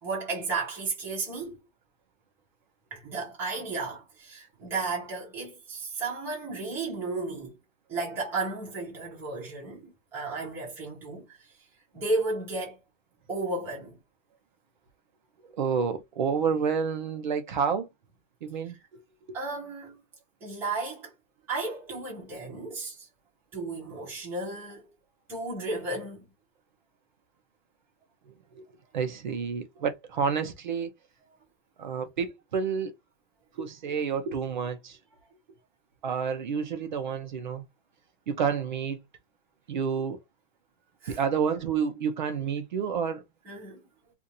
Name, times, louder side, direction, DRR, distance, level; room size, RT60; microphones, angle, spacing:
voice 1, 0.0-1.6 2.9-7.6 7.9-11.4 11.9-12.8 13.3-14.0 19.3-20.0 20.4-21.1 21.5-23.1 23.5-24.9 25.3-26.3 41.0-41.2 43.5-43.8, right 3 dB, 5° right, 0.7 m, -33 dB
voice 2, 15.6-17.9 18.4-18.8 28.6-28.7 28.9-30.9 31.8-32.9 33.6-35.0 36.0-37.6 38.3-39.0 39.7-40.2 41.1-43.2, right 6 dB, 35° right, 0.5 m, -29 dB
2.6 x 2.5 x 4.1 m
hypercardioid pair, 175°, 41 cm